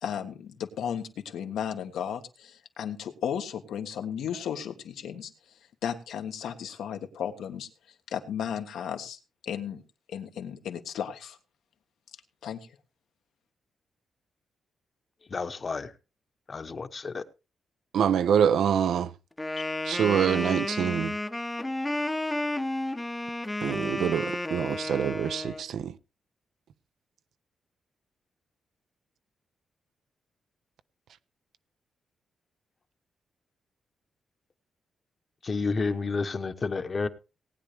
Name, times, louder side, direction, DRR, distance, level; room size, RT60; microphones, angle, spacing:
voice 1, 0.0-5.3 5.8-7.7 8.1-9.8 10.1-11.4 12.4-12.6, left 8 dB, 90° left, 1.5 m, -34 dB
voice 2, 15.3-15.9 16.5-17.3 19.6-19.7 35.4-37.1, left 4 dB, 40° left, 1.0 m, -30 dB
voice 3, 17.9-19.1 19.8-21.2 23.6-25.9, right 8 dB, 80° right, 0.5 m, -25 dB
Wind instrument woodwind instrument, 19.4-25.6, left 1 dB, 15° left, 0.7 m, -32 dB
19.0 x 9.1 x 3.4 m
cardioid pair, 95°, 0 cm